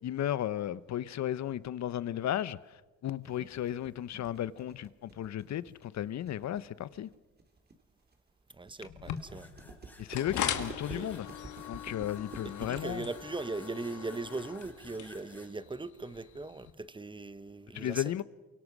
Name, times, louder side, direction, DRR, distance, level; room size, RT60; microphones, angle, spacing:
voice 1, 0.0-7.1 10.0-11.3 11.7-13.1 17.7-18.2, left 11 dB, 65° left, 0.9 m, -34 dB
sound 1, 3.2-15.2, right 3 dB, 30° right, 3.0 m, -50 dB
voice 2, 8.5-9.5 10.9-11.1 12.6-18.2, right 3 dB, 15° right, 1.2 m, -40 dB
sound 2, 8.8-16.7, left 9 dB, 80° left, 2.0 m, -40 dB
sound 3, 9.2-15.5, left 1 dB, 5° left, 4.6 m, -56 dB
28.5 x 24.0 x 6.2 m
cardioid pair, 90°, 30 cm